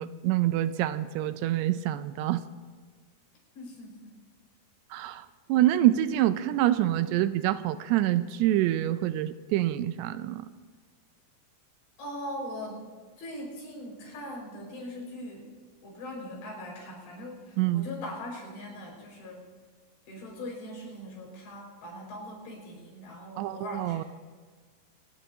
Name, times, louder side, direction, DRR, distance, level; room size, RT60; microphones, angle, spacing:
voice 1, 0.0-2.4 4.9-10.5 17.6-17.9 23.4-24.0, right 13 dB, 80° right, 12 dB, 2.6 m, -26 dB
voice 2, 3.6-4.1 12.0-12.8 13.2-15.5 15.8-19.4 20.1-24.1, left 1 dB, 80° left, -2 dB, 7.6 m, -40 dB
25.5 x 19.5 x 2.8 m, 1.5 s
omnidirectional pair, 5.0 m